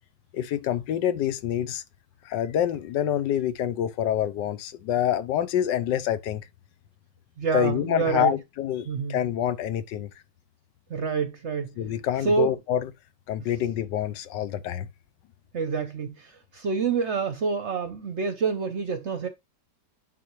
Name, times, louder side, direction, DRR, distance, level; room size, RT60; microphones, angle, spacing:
voice 1, 0.3-1.8 2.2-6.4 7.5-10.1 11.8-12.9 13.3-14.9, left 10 dB, 80° left, 1.4 m, -26 dB
voice 2, 7.4-8.3 8.9-9.2 10.9-12.0 12.2-12.5 15.5-19.3, right 5 dB, 55° right, 0.8 m, -27 dB
9.7 x 3.8 x 3.1 m
omnidirectional pair, 1.9 m